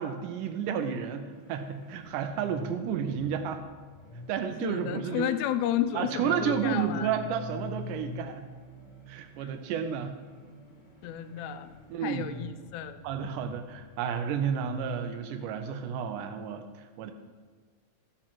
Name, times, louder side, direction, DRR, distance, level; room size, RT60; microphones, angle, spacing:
voice 1, 0.0-3.6 4.3-5.3 5.9-8.5 9.1-10.2 11.9-12.3 13.0-17.1, right 7 dB, 85° right, 7 dB, 2.3 m, -31 dB
sound 1, 1.3-15.1, left 2 dB, 40° left, 1.9 m, -46 dB
voice 2, 4.6-7.1 9.4-9.5 11.0-11.7 12.0-13.0, left 10 dB, 80° left, 9 dB, 1.7 m, -32 dB
14.0 x 9.0 x 3.0 m, 1.5 s
omnidirectional pair, 3.6 m